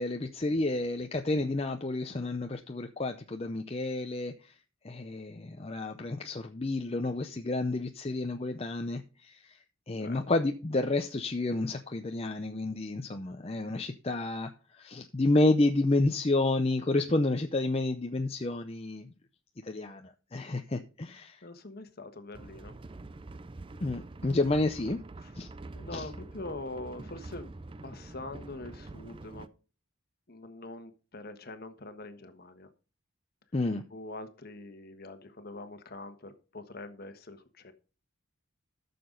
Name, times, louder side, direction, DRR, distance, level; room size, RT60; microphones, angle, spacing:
voice 1, 0.0-4.5 4.8-9.6 9.9-19.1 19.6-21.4 23.8-25.0 25.3-25.5 25.9-26.1 33.5-33.8, left 2 dB, 30° left, 0.6 m, -30 dB
voice 2, 21.4-22.8 25.2-25.3 25.7-27.5 27.8-29.5 30.3-32.7 33.9-37.7, left 2 dB, 50° left, 1.4 m, -43 dB
sound 1, 22.3-29.5, right 2 dB, 25° right, 0.4 m, -45 dB
13.5 x 6.8 x 3.9 m
head